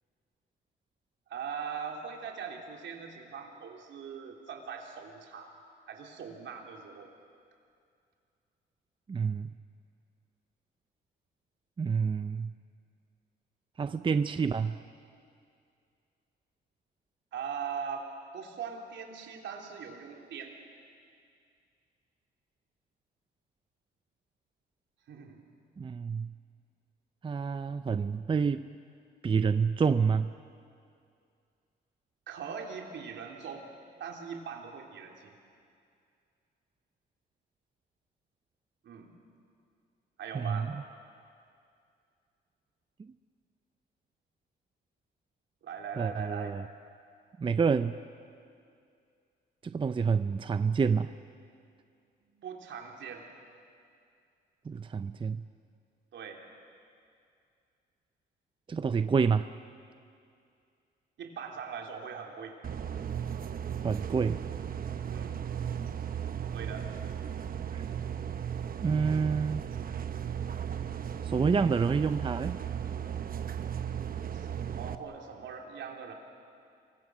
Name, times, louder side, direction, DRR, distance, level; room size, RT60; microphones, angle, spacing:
voice 1, 1.3-5.5 5.9-7.1 17.3-20.6 25.1-25.4 32.3-33.7 34.0-35.4 38.8-39.1 40.2-40.7 45.6-46.6 52.3-53.3 56.1-56.4 61.2-62.6 65.1-65.4 66.5-66.9 74.3-76.1, right 6 dB, 70° right, 1 dB, 3.3 m, -41 dB
voice 2, 9.1-9.5 11.8-12.5 13.8-14.8 25.8-26.3 27.2-28.6 29.2-30.3 40.3-40.7 43.0-43.1 46.0-46.6 47.4-48.0 49.6-51.1 54.7-55.4 58.7-59.5 63.8-64.4 67.7-67.8 68.8-69.7 71.2-72.6, right 5 dB, 25° right, 11 dB, 0.5 m, -28 dB
sound 1, 62.6-74.9, right 8 dB, 45° right, 1.1 m, -36 dB
27.5 x 23.5 x 6.2 m, 2.4 s
cardioid pair, 90°, 20 cm